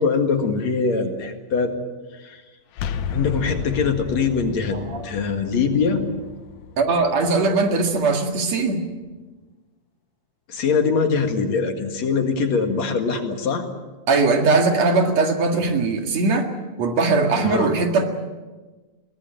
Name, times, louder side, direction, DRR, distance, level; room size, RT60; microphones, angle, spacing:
voice 1, 0.0-1.7 2.2-2.4 3.1-6.1 10.5-13.7 17.4-17.7, left 5 dB, 65° left, 5 dB, 3.1 m, -22 dB
sound 1, 2.7-8.4, left 7 dB, 85° left, 2.4 m, -33 dB
voice 2, 4.7-5.0 6.8-8.8 14.1-16.5 16.8-18.1, right 3 dB, 60° right, 4 dB, 3.1 m, -20 dB
23.0 x 18.0 x 9.2 m, 1.3 s
omnidirectional pair, 3.5 m